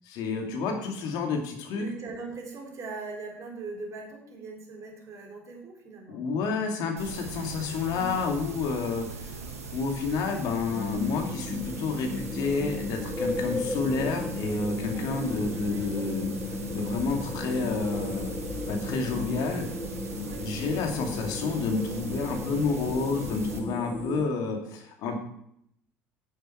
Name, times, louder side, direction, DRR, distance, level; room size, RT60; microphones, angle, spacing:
voice 1, 0.0-1.8 6.1-9.4 9.7-18.3 18.7-19.7 20.4-25.2, left 4 dB, 60° left, 3 dB, 2.3 m, -30 dB
voice 2, 1.7-6.2 7.9-8.2 14.9-15.1 15.5-16.0 20.2-20.5 25.0-25.2, right 3 dB, 45° right, 1 dB, 3.5 m, -41 dB
sound 1, 7.0-23.6, right 3 dB, 85° right, 1.2 m, -40 dB
sound 2, 10.7-24.2, left 2 dB, 15° left, 2.2 m, -35 dB
11.0 x 8.0 x 4.6 m, 0.71 s
figure-of-eight pair, 65°, 8 cm